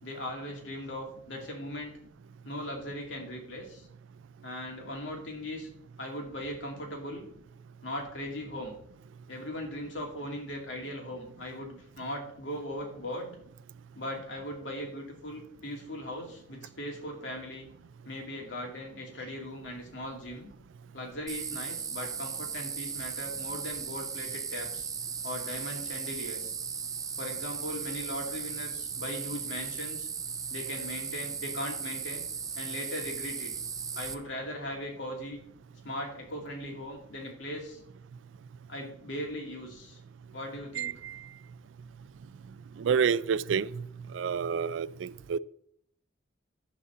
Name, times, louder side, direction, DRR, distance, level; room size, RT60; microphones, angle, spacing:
voice 1, 0.0-1.9 2.4-3.9 4.4-5.7 6.0-7.3 7.8-8.7 9.3-13.3 14.0-17.7 18.0-20.5 20.9-24.9 25.2-26.5 27.2-30.1 30.5-32.2 32.5-33.5 33.9-35.4 35.8-37.8 38.7-40.0 40.3-40.9, left 1 dB, 80° left, 2.6 m, -39 dB
sound 1, 21.3-34.1, right 6 dB, 20° right, 0.6 m, -37 dB
voice 2, 40.8-41.2 42.8-43.8 44.1-45.4, right 7 dB, 90° right, 0.4 m, -29 dB
11.0 x 4.2 x 7.1 m
head